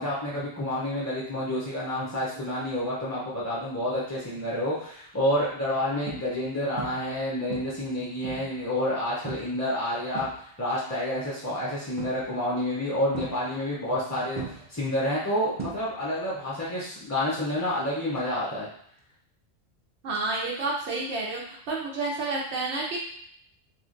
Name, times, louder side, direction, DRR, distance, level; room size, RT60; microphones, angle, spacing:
voice 1, 0.0-18.7, left 1 dB, 25° left, -7 dB, 0.4 m, -29 dB
sound 1, 4.4-4.7 5.3-5.5 6.1-6.5 6.8-7.2 7.5-8.6 9.2-9.6 9.9-10.8 12.0-12.5 13.1-14.0 14.3-16.2 16.5-16.9 19.0-19.1, right 4 dB, 55° right, 0.3 m, -39 dB
voice 2, 20.0-23.0, right 3 dB, 80° right, -3 dB, 0.9 m, -30 dB
3.0 x 2.4 x 2.5 m, 0.66 s
omnidirectional pair, 1.1 m